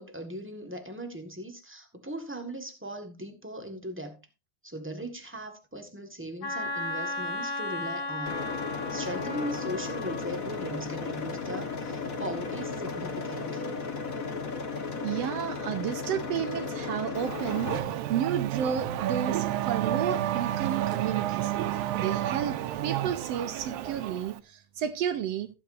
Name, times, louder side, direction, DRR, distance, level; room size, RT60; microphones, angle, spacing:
voice 1, 0.0-4.2 4.6-8.5 8.9-13.7, equal, 10° right, 0.6 m, -39 dB
Wind instrument woodwind instrument, 6.4-10.3, left 2 dB, 60° left, 4.7 m, -35 dB
sound 1, 8.3-17.8, left 4 dB, 40° left, 1.2 m, -35 dB
voice 2, 15.0-17.7 18.1-21.5 22.0-22.6 22.8-25.5, right 9 dB, 70° right, 1.7 m, -31 dB
Race car auto racing / Accelerating revving vroom, 17.2-24.4, right 12 dB, 85° right, 2.4 m, -30 dB
15.0 x 9.3 x 2.6 m
omnidirectional pair, 3.4 m